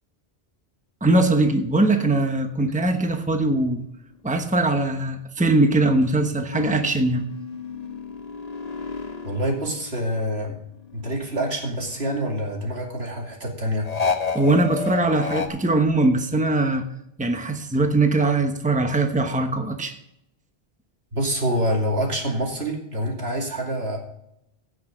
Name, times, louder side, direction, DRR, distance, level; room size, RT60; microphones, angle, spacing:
voice 1, 1.0-3.8 4.2-7.2 14.3-16.8 17.2-20.0, right 2 dB, 10° right, 6 dB, 1.0 m, -21 dB
sound 1, 6.5-10.4 10.7-12.3 13.8-15.5, left 4 dB, 40° left, 1.1 m, -31 dB
voice 2, 9.2-10.6 10.9-13.9 21.1-24.0, equal, 80° right, 0 dB, 2.8 m, -26 dB
15.5 x 6.3 x 5.2 m, 0.79 s
omnidirectional pair, 1.0 m